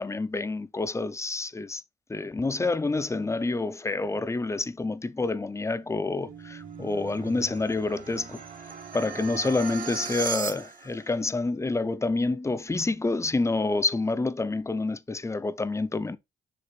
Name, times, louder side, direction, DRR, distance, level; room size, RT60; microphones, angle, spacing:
voice 1, 0.0-1.8 2.1-8.4 8.9-16.2, left 3 dB, 15° left, 0.6 m, -28 dB
sound 1, 5.8-11.0, right 6 dB, 45° right, 1.5 m, -38 dB
6.7 x 2.7 x 5.7 m
cardioid pair, 90°, 20 cm